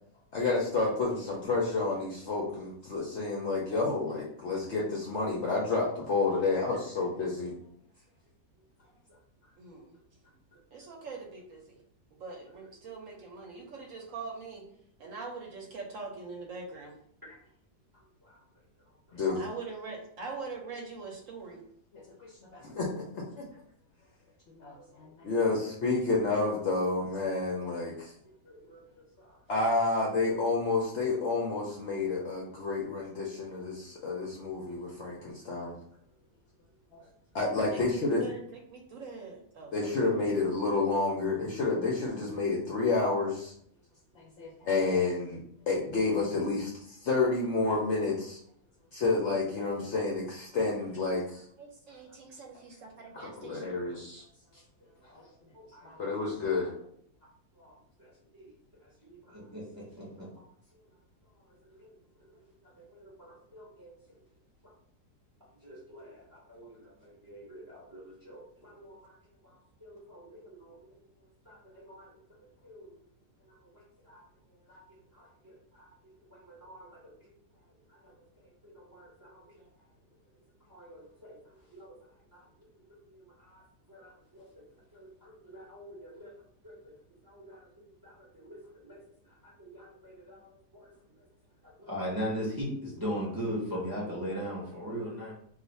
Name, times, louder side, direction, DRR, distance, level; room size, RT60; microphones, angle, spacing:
voice 1, 0.3-7.5 19.1-19.4 21.9-23.2 24.5-28.1 29.5-35.8 36.9-37.0 37.3-38.2 39.7-43.5 44.2-45.4 45.7-48.4 48.9-51.4 53.1-54.2 55.8-56.7, left 3 dB, 65° left, -3 dB, 0.7 m, -30 dB
voice 2, 9.6-10.0 10.7-11.8 12.1-14.6 15.0-16.9 19.4-21.6 37.7-40.2 50.8-50.9 51.6-53.8, right 4 dB, 65° right, 0 dB, 0.9 m, -43 dB
voice 3, 24.6-25.2 28.4-28.8 29.2-29.4 55.0-55.3 55.5-56.4 57.6-58.5 59.0-60.3 61.7-63.9 65.6-69.1 69.4-70.9 71.5-72.1 72.6-72.9 73.4-74.2 74.7-74.8 75.1-77.3 77.9-78.1 78.6-79.6 80.7-81.9 82.3-82.4 82.9-83.6 83.9-84.5 84.9-86.3 86.6-86.9 87.2-87.7 88.0-89.0 89.4-90.9 91.8-95.3, equal, 25° right, -5 dB, 0.4 m, -42 dB
2.4 x 2.4 x 4.0 m, 0.66 s
omnidirectional pair, 1.7 m